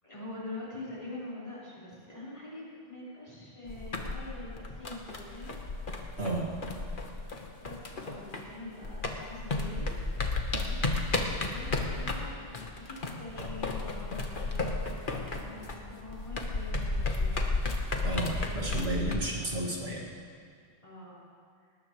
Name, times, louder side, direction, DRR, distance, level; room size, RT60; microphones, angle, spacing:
voice 1, 0.0-5.6 7.6-9.9 10.5-10.9 11.5-14.6 14.9-17.5 18.3-19.7 20.8-21.2, left 2 dB, 35° left, -8 dB, 4.5 m, -45 dB
sound 1, 3.7-8.6 8.8-19.2, left 3 dB, 50° left, 1.3 m, -33 dB
voice 2, 6.2-6.5 18.0-20.1, right 2 dB, 65° right, -2 dB, 2.3 m, -32 dB
19.5 x 19.0 x 3.1 m, 2.2 s
omnidirectional pair, 1.1 m